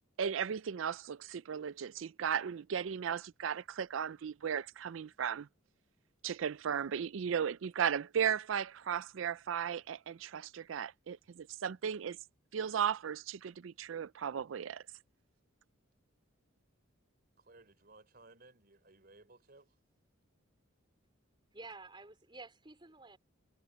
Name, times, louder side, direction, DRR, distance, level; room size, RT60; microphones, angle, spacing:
voice 1, 0.2-5.5 6.2-12.2 12.5-14.8, right 8 dB, 75° right, 0.4 m, -36 dB
voice 2, 17.4-19.8, right 3 dB, 50° right, 3.7 m, -60 dB
voice 3, 21.5-23.2, right 3 dB, 25° right, 4.4 m, -50 dB
head